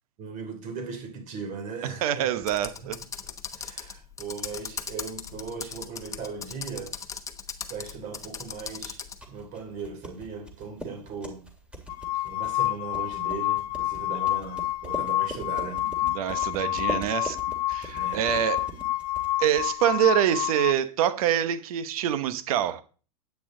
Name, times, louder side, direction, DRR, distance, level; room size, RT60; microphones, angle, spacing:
voice 1, 0.2-2.3 2.8-2.9 3.2-6.9 7.7-9.0 9.3-11.4 12.2-15.9 17.9-18.2, right 5 dB, 40° right, 3.1 m, -38 dB
voice 2, 2.0-3.0 16.0-17.4 17.7-18.6 19.4-22.8, right 11 dB, 70° right, 1.0 m, -25 dB
Computer keyboard, 2.4-9.2, left 6 dB, 15° left, 0.9 m, -38 dB
sound 1, 8.9-19.9, right 1 dB, 5° right, 2.1 m, -42 dB
sound 2, 11.9-20.7, left 17 dB, 75° left, 0.5 m, -29 dB
10.0 x 8.5 x 3.8 m
supercardioid pair, 130°, 19 cm